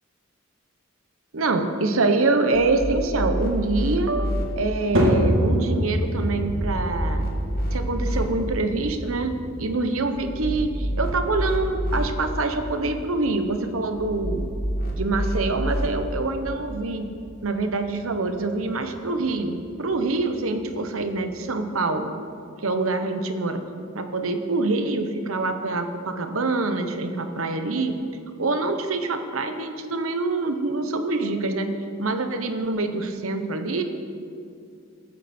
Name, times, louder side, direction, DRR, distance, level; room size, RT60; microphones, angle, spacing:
voice 1, 1.3-7.3 7.7-9.3 9.6-14.5 15.0-17.0 17.4-22.1 22.6-23.6 23.9-27.9 28.4-31.7 32.0-33.8, right 3 dB, 80° right, 7 dB, 1.1 m, -25 dB
sound 1, 2.5-4.5 6.3-8.3 10.1-12.1 14.0-15.9, right 1 dB, 45° left, 2.0 m, -28 dB
sound 2, 5.0-21.4, equal, 65° right, 2.8 m, -30 dB
19.5 x 8.9 x 4.5 m, 2.4 s
head